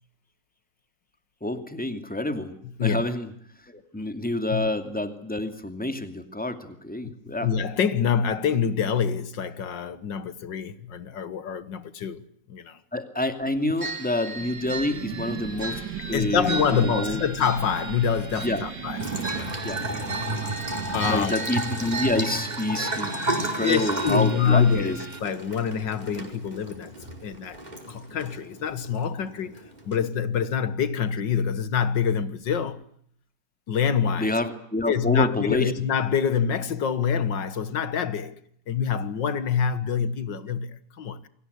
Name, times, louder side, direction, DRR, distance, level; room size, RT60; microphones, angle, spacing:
voice 1, 1.4-2.5 2.8-3.3 3.6-7.5 12.9-17.3 18.4-18.6 19.6-19.8 21.1-25.0 34.2-35.7, left 1 dB, 5° left, 2.4 m, -28 dB
voice 2, 7.4-12.2 12.5-12.8 16.1-19.6 20.9-21.4 23.6-27.6 27.9-29.5 29.9-32.8 33.7-34.4 34.9-38.3 38.7-41.3, left 7 dB, 90° left, 2.1 m, -26 dB
sound 1, 13.8-25.2, right 3 dB, 45° right, 2.9 m, -36 dB
sound 2, 14.4-21.3, right 9 dB, 90° right, 2.1 m, -38 dB
Bathtub (filling or washing) / Trickle dribble, 19.0-30.0, right 1 dB, 25° right, 4.8 m, -33 dB
29.0 x 23.5 x 8.2 m
omnidirectional pair, 1.9 m